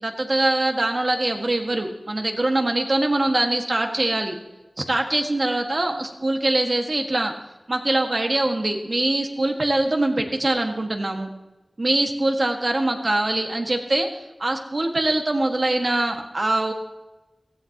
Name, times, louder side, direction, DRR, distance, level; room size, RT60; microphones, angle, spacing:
voice 1, 0.0-4.4 4.8-7.3 7.7-11.3 11.8-14.1 14.4-16.7, right 2 dB, 50° right, 4 dB, 1.8 m, -23 dB
16.5 x 16.0 x 3.0 m, 1.1 s
wide cardioid pair, 60°, 0 cm